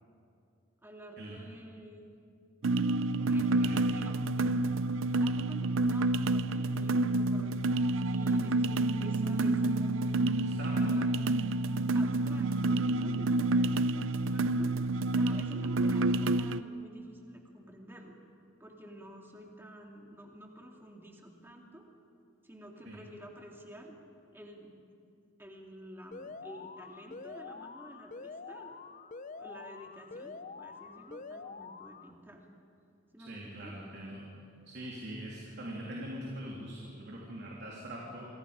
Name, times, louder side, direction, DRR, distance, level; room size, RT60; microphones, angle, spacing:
voice 1, 0.8-2.1 3.2-4.5 5.0-7.7 8.1-11.2 11.9-18.2 18.6-21.9 22.4-24.0 24.3-24.7 25.4-28.8 29.4-32.4 33.1-33.8, right 1 dB, 10° right, 0 dB, 2.5 m, -50 dB
sound 1, 2.6-16.6, right 2 dB, 75° right, 0.6 m, -28 dB
voice 2, 3.2-3.9 10.6-11.0 22.8-23.0 33.3-34.2 34.6-38.3, right 1 dB, 55° right, -4 dB, 3.3 m, -42 dB
Alarm, 26.1-32.1, left 4 dB, 40° left, 0.6 m, -46 dB
28.0 x 23.5 x 5.2 m, 2.4 s
head